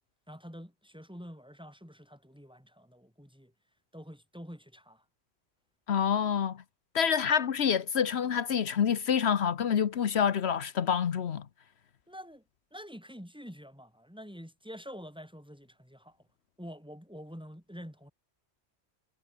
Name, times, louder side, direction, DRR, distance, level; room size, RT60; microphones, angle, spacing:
voice 1, 0.3-3.5 3.9-5.0 12.1-12.4 12.7-16.2 16.6-18.1, equal, 5° right, 5.8 m, -47 dB
voice 2, 5.9-6.6 6.9-11.5, left 7 dB, 75° left, 1.2 m, -27 dB
omnidirectional pair, 1.1 m